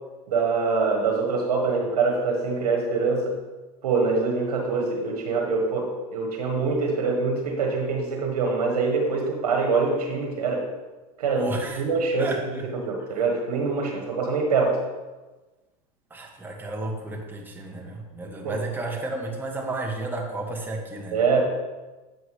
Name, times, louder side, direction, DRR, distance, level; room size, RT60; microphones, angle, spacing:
voice 1, 0.3-3.3 3.8-10.6 11.2-11.5 11.8-14.8 18.4-18.6 21.1-21.4, right 4 dB, 80° right, 1 dB, 1.5 m, -24 dB
voice 2, 11.4-11.8 12.2-12.7 16.1-21.2, right 2 dB, 10° right, 0 dB, 1.4 m, -32 dB
8.1 x 7.0 x 3.3 m, 1.2 s
hypercardioid pair, 110°, 19 cm